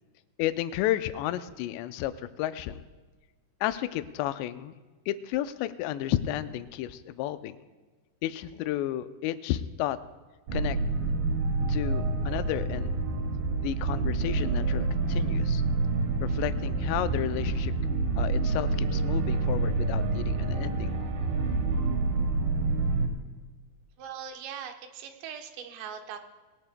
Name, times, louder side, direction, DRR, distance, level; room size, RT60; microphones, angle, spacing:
voice 1, 0.4-2.1 2.4-2.8 3.6-4.7 5.1-7.6 8.2-10.0 10.5-10.8 11.7-13.0 13.6-15.6 16.2-17.7 18.2-20.9, left 13 dB, 85° left, 11 dB, 2.7 m, -32 dB
sound 1, 10.5-23.1, right 3 dB, 65° right, 2.8 m, -27 dB
voice 2, 24.0-26.2, right 8 dB, 80° right, 4 dB, 3.2 m, -40 dB
21.0 x 18.5 x 2.2 m, 1.3 s
omnidirectional pair, 5.1 m